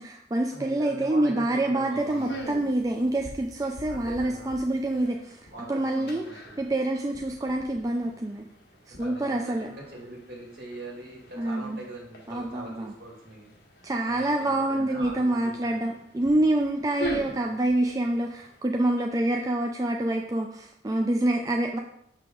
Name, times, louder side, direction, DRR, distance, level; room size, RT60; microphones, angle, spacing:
voice 1, 0.0-5.4 5.7-6.2 6.6-8.4 8.9-9.7 11.4-11.8 12.3-12.9 13.8-21.8, right 1 dB, 20° right, 2 dB, 0.3 m, -26 dB
voice 2, 0.5-2.5 3.9-4.5 5.5-6.7 8.9-13.5 14.0-15.9, right 1 dB, 55° right, -3 dB, 2.4 m, -42 dB
sound 1, 1.9-18.6, equal, 65° left, 1.3 m, -43 dB
6.0 x 5.8 x 3.7 m, 0.76 s
head